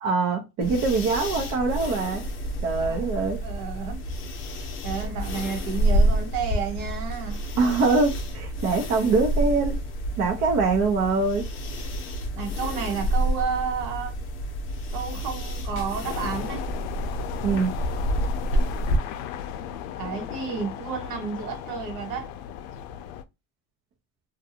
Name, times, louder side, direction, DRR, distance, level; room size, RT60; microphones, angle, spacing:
voice 1, 0.0-2.2 2.6-3.4 7.5-9.8 10.2-11.4 17.4-17.7, right 4 dB, 45° right, 0.7 m, -23 dB
sound 1, 0.6-19.0, right 1 dB, 35° left, 0.6 m, -29 dB
voice 2, 3.4-4.0 4.8-7.6 12.3-14.2 14.9-16.6 20.0-22.3, right 6 dB, 65° right, 1.1 m, -31 dB
sound 2, 16.0-23.2, left 10 dB, 80° left, 0.5 m, -36 dB
2.6 x 2.3 x 2.7 m
cardioid pair, 145°, 35 cm